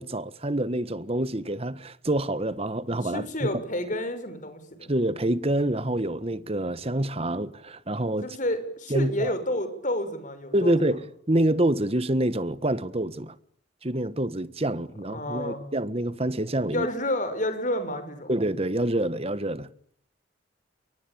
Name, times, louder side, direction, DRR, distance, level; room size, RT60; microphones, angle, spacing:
voice 1, 0.0-3.5 4.9-8.3 8.9-9.3 10.5-13.3 13.8-16.9 18.3-19.7, right 1 dB, 30° right, 1.5 m, -27 dB
voice 2, 3.0-4.9 8.2-11.0 15.1-15.6 16.7-18.3, left 1 dB, 40° left, 6.3 m, -30 dB
28.5 x 23.5 x 8.8 m
head